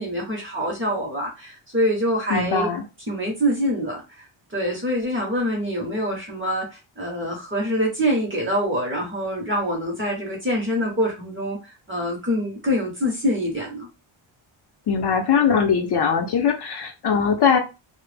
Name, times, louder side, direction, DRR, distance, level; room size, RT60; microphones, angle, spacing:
voice 1, 0.0-2.8 3.1-4.0 4.5-13.9, equal, 25° right, -1 dB, 0.6 m, -25 dB
voice 2, 2.3-2.8 14.9-17.6, left 6 dB, 55° left, 3 dB, 0.6 m, -21 dB
2.1 x 2.0 x 3.2 m, 0.28 s
wide cardioid pair, 165°, 49 cm